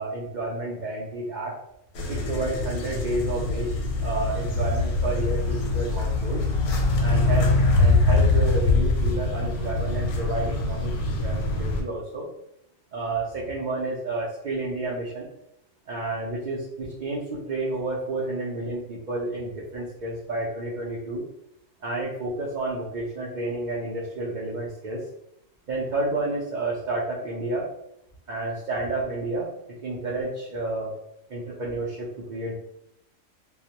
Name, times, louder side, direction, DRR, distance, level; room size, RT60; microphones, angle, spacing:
voice 1, 0.0-1.5 2.1-3.7 4.0-6.5 7.0-7.5 7.8-12.3 12.9-15.3 15.9-21.2 21.8-25.0 25.7-27.7 28.3-29.5 29.8-30.9 31.3-32.5, right 2 dB, 90° right, -4 dB, 0.4 m, -30 dB
sound 1, 2.0-11.8, left 2 dB, 90° left, 1.0 m, -23 dB
2.3 x 2.0 x 2.8 m, 0.79 s
omnidirectional pair, 1.4 m